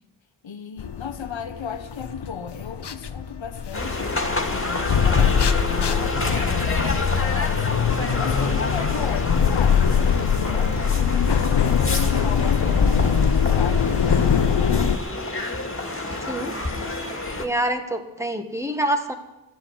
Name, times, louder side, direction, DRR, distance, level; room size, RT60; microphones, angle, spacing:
voice 1, 0.4-4.1 4.5-11.4 11.9-14.3, left 6 dB, 85° left, 1.1 m, -36 dB
sound 1, 0.8-15.0, left 7 dB, 65° left, 0.8 m, -22 dB
sound 2, 3.7-17.5, left 2 dB, 30° left, 2.3 m, -28 dB
voice 2, 17.4-19.1, right 1 dB, 5° right, 1.6 m, -26 dB
13.5 x 10.5 x 8.1 m
wide cardioid pair, 65°, 45 cm